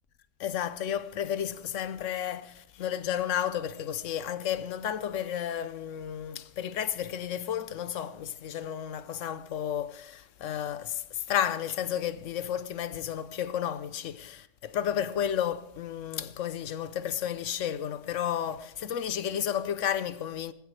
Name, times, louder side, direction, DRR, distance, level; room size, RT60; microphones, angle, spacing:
voice 1, 0.4-20.5, left 10 dB, 85° left, 1.1 m, -32 dB
19.0 x 15.0 x 3.3 m
omnidirectional pair, 1.2 m